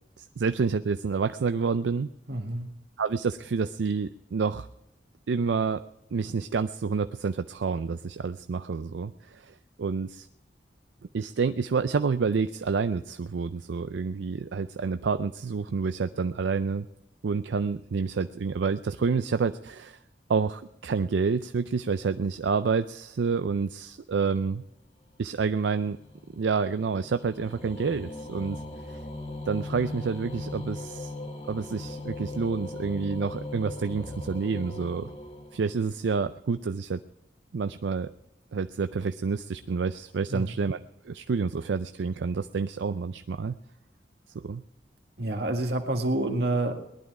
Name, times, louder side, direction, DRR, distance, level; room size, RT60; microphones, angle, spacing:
voice 1, 0.2-2.1 3.0-4.7 5.3-5.8 6.1-10.3 11.1-16.9 17.2-20.0 20.3-24.6 25.2-26.0 26.3-28.6 28.9-29.0 29.4-31.1 31.5-35.1 35.5-37.0 37.5-38.1 38.5-43.6 44.3-44.6, right 5 dB, 80° right, 11 dB, 0.4 m, -28 dB
voice 2, 2.3-2.7 40.3-40.5 45.2-46.7, right 2 dB, 65° right, 4 dB, 1.8 m, -28 dB
sound 1, 25.2-36.1, left 2 dB, 30° left, 1.4 m, -39 dB
19.5 x 11.5 x 4.8 m, 0.82 s
head